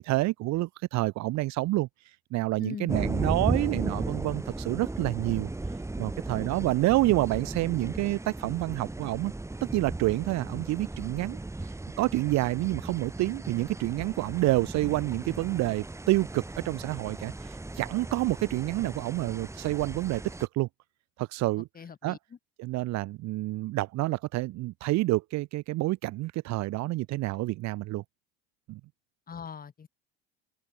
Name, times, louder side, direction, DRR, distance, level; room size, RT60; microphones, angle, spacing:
voice 1, 0.0-1.9 2.3-5.5 6.0-9.3 9.7-11.4 12.0-20.7 21.2-21.7 22.0-22.2 22.6-28.0 28.7-28.8, right 19 dB, 60° right, 3.4 m, -28 dB
voice 2, 2.6-3.0 21.7-22.4 29.3-29.9, left 6 dB, 30° left, 5.9 m, -41 dB
sound 1, 2.9-20.5, right 2 dB, 10° right, 4.0 m, -36 dB
open air
supercardioid pair, 110°, 31 cm